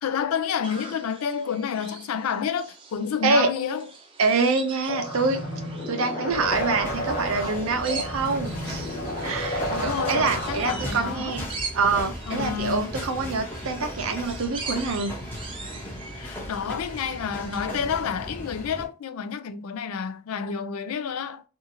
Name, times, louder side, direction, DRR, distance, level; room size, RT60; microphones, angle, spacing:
voice 1, 0.0-3.9 9.7-11.4 12.3-12.9 16.1-21.4, left 7 dB, 80° left, 0.4 m, -29 dB
sound 1, 0.6-17.7, right 4 dB, 25° right, 0.5 m, -42 dB
voice 2, 4.2-5.4 5.9-8.9 9.2-11.4 11.7-15.1, right 4 dB, 70° right, 0.6 m, -25 dB
sound 2, 4.9-10.9, equal, 40° left, 0.8 m, -31 dB
sound 3, 6.3-18.9, equal, 10° left, 0.7 m, -37 dB
2.7 x 2.5 x 2.7 m
head